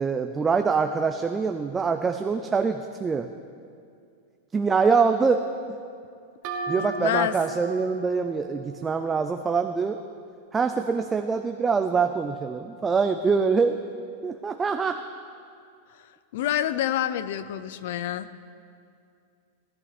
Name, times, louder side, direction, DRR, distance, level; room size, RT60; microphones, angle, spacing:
voice 1, 0.0-3.3 4.5-5.4 6.7-10.0 10.5-13.8 14.2-15.0, right 5 dB, 15° right, 7 dB, 0.4 m, -24 dB
sound 1, 6.4-10.0, right 4 dB, 45° right, 1.5 m, -37 dB
voice 2, 6.8-7.4 16.3-18.3, left 11 dB, 65° left, 15 dB, 0.6 m, -27 dB
18.0 x 11.0 x 4.1 m, 2.4 s
supercardioid pair, 150°, 0 cm